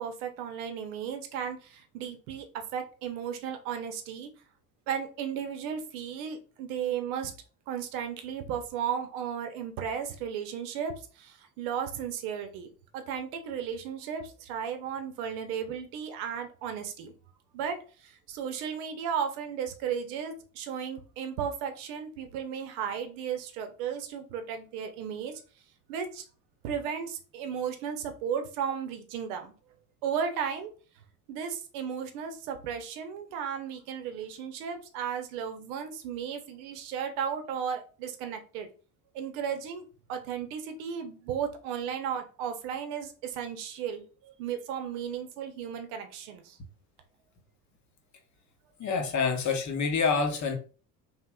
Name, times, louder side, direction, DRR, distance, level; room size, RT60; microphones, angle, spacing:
voice 1, 0.0-4.3 4.9-7.3 7.7-12.7 12.9-17.1 17.5-25.4 25.9-26.2 26.6-29.5 30.0-30.7 31.3-38.7 39.1-39.8 40.1-46.6 48.8-48.9, right 7 dB, 65° right, 7 dB, 0.8 m, -35 dB
voice 2, 48.8-50.6, left 5 dB, 35° left, 4 dB, 1.0 m, -27 dB
3.2 x 2.9 x 2.3 m, 0.38 s
figure-of-eight pair, 60°, 47 cm